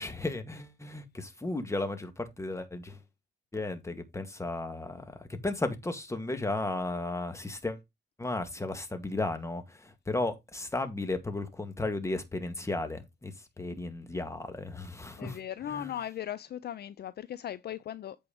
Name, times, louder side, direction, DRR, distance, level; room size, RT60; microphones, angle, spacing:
voice 1, 0.0-3.0 3.5-7.8 8.2-15.4 15.6-15.9, left 2 dB, 15° left, 1.9 m, -34 dB
voice 2, 15.2-18.2, left 11 dB, 55° left, 0.5 m, -38 dB
8.4 x 4.5 x 5.1 m
cardioid pair, 90°, 20 cm